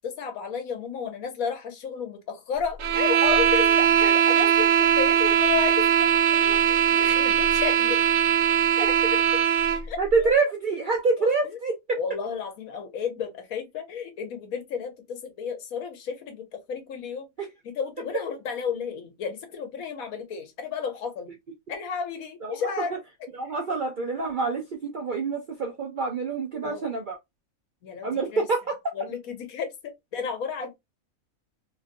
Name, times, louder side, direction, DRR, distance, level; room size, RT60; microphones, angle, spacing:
voice 1, 0.0-8.2 8.8-9.2 9.9-10.3 11.2-11.3 12.0-17.3 17.6-21.3 21.7-22.9 26.6-26.8 27.8-28.5 28.9-30.8, left 7 dB, 75° left, 1.2 m, -32 dB
sound 1, 2.8-9.9, right 9 dB, 85° right, 1.1 m, -20 dB
voice 2, 10.0-12.0 17.4-17.5 22.4-23.0 23.4-27.2 28.0-28.9, right 4 dB, 60° right, 0.5 m, -26 dB
3.0 x 2.5 x 2.5 m
omnidirectional pair, 1.5 m